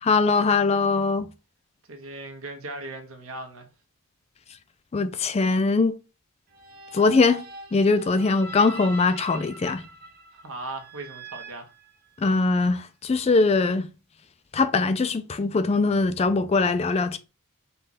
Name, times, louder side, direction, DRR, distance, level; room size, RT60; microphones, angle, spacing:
voice 1, 0.0-1.3 4.9-5.9 6.9-7.4 7.7-9.8 12.2-13.9 14.5-17.2, left 3 dB, 30° left, 0.3 m, -21 dB
voice 2, 1.9-3.7 10.3-11.7, right 2 dB, 65° right, 1.0 m, -38 dB
sound 1, 6.5-12.5, right 2 dB, 45° right, 0.9 m, -43 dB
5.4 x 2.4 x 4.0 m
head